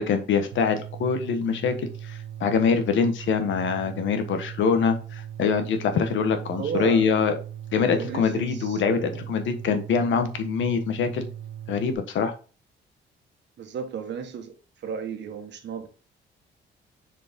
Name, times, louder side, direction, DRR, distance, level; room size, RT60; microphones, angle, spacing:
voice 1, 0.0-7.3 7.7-11.3 11.7-12.3, left 6 dB, 75° left, 1.4 m, -24 dB
sound 1, 0.5-11.9, right 10 dB, 85° right, 0.8 m, -39 dB
voice 2, 6.6-7.3 7.8-9.2 13.6-15.9, right 6 dB, 65° right, 1.4 m, -34 dB
6.5 x 5.0 x 3.7 m
cardioid pair, 90°, 20 cm